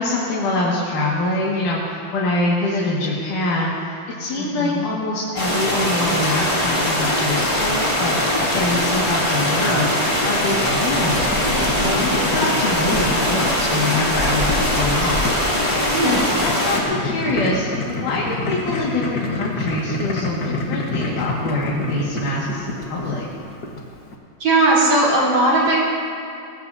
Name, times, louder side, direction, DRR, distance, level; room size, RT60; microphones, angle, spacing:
voice 1, 0.0-9.9 10.2-11.4 11.8-15.3 16.0-23.2, left 2 dB, 60° left, -6 dB, 3.3 m, -24 dB
voice 2, 4.4-4.8 15.9-16.3 24.4-25.8, right 2 dB, 45° right, -6 dB, 4.9 m, -18 dB
sound 1, 5.4-16.8, left 1 dB, 10° left, 2.4 m, -21 dB
Boiling, 6.1-24.2, left 3 dB, 85° left, 0.9 m, -30 dB
22.5 x 20.5 x 2.8 m, 2.4 s
omnidirectional pair, 4.4 m